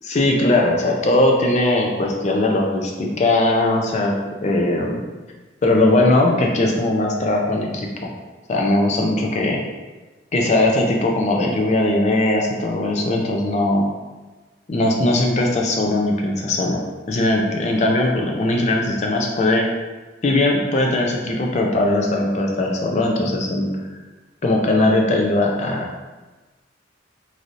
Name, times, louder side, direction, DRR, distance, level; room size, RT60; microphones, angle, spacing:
voice 1, 0.0-4.1 4.4-5.0 5.6-8.1 8.5-9.6 10.3-13.8 14.7-16.8 17.1-19.7 20.2-23.7 24.4-25.8, left 2 dB, 35° left, 0 dB, 0.4 m, -19 dB
3.2 x 2.6 x 2.5 m, 1.2 s
head